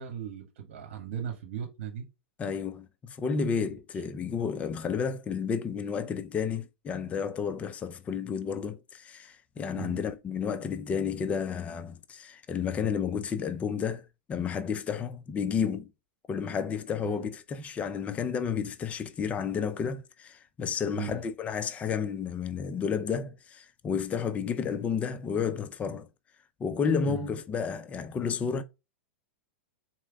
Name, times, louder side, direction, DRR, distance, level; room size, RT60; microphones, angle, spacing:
voice 1, 0.0-2.1 9.7-10.1 17.0-17.3 21.0-21.2 27.1-27.3, right 8 dB, 70° right, 1.3 m, -38 dB
voice 2, 2.4-15.9 16.3-26.1 26.6-28.6, left 6 dB, 20° left, 0.5 m, -31 dB
4.3 x 3.2 x 3.5 m
hypercardioid pair, 130°, 7 cm